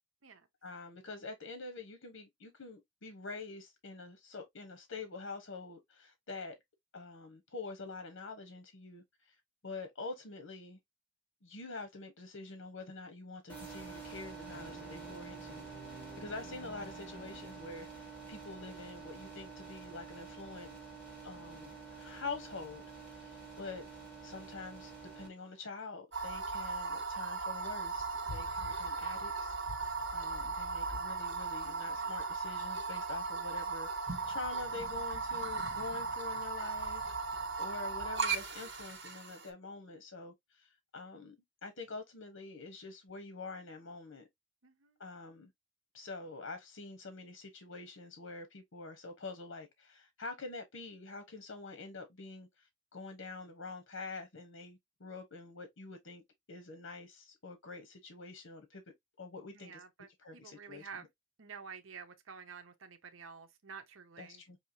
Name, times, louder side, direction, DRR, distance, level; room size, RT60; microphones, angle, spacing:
voice 1, 0.6-6.6 6.9-9.4 9.6-10.8 11.4-15.6 16.2-20.8 21.2-23.9 24.2-29.6 30.1-37.1 37.6-41.3 41.6-44.3 45.0-45.5 45.9-56.2 56.5-58.8 59.2-59.8 60.2-60.9 64.2-64.6, left 3 dB, 80° left, 1.0 m, -46 dB
sound 1, 13.5-25.3, right 5 dB, 10° left, 2.4 m, -48 dB
sound 2, 14.5-18.3, equal, 40° left, 1.8 m, -53 dB
voice 2, 21.3-21.7 31.8-32.1 44.6-44.9 59.5-61.1 61.4-64.4, right 6 dB, 90° right, 0.8 m, -50 dB
sound 3, 26.1-39.5, right 4 dB, 60° right, 1.6 m, -37 dB
5.5 x 2.9 x 2.7 m
head